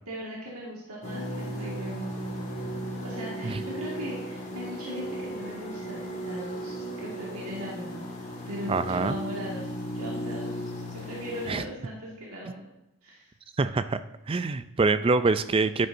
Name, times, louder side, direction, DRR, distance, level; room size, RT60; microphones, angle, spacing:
voice 1, 0.1-2.8 3.0-6.7 7.0-8.1 8.5-10.5 10.9-12.6 13.0-13.3, equal, 80° right, -4 dB, 2.0 m, -39 dB
sound 1, 1.0-11.6, equal, 30° left, 1.9 m, -36 dB
voice 2, 8.7-9.2 11.5-11.7 13.6-14.0 14.3-15.9, right 3 dB, 25° right, 12 dB, 0.3 m, -25 dB
11.0 x 9.4 x 2.7 m, 0.93 s
head